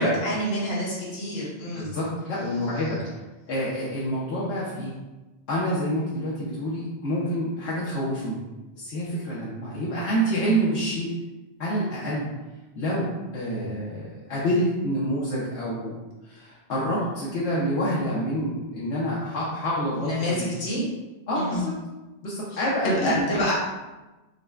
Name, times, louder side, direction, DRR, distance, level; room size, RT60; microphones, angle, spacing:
voice 1, 0.0-1.9 20.0-20.8 21.3-21.7 22.5-23.5, equal, 65° left, -6 dB, 1.4 m, -28 dB
voice 2, 1.7-3.1 3.5-4.9 5.5-8.4 8.7-11.1 11.6-12.3 12.8-16.0 16.2-20.5 21.3-21.7 22.2-23.4, equal, 85° left, -7 dB, 1.0 m, -27 dB
6.3 x 2.1 x 2.3 m, 1.1 s
omnidirectional pair, 1.1 m